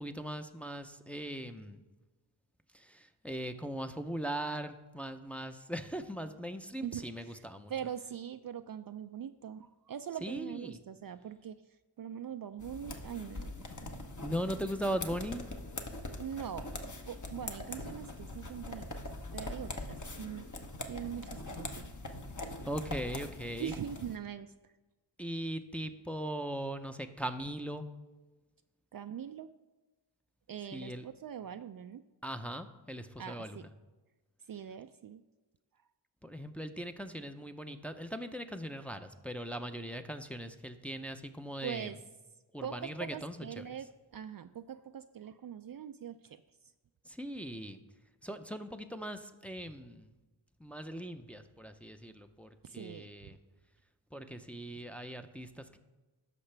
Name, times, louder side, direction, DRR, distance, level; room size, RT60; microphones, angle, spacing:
voice 1, 0.0-1.8 2.7-7.7 10.2-10.8 14.2-15.5 22.7-23.7 25.2-27.9 30.7-31.1 32.2-33.7 36.2-42.0 42.5-43.8 47.0-47.8 48.2-50.1 50.6-53.4 54.1-55.8, equal, 5° left, 6 dB, 0.6 m, -39 dB
voice 2, 6.8-7.4 7.7-11.6 12.0-13.7 16.2-16.7 17.1-19.1 19.3-20.5 20.9-21.9 23.6-24.5 28.9-29.5 30.5-32.0 33.2-33.6 34.5-35.2 41.6-42.0 42.6-43.9 44.1-46.4 52.6-53.1, right 9 dB, 50° right, 10 dB, 0.4 m, -42 dB
sound 1, 12.6-24.2, left 2 dB, 40° left, 1.1 m, -42 dB
13.5 x 5.8 x 3.3 m, 1.2 s
cardioid pair, 45°, 47 cm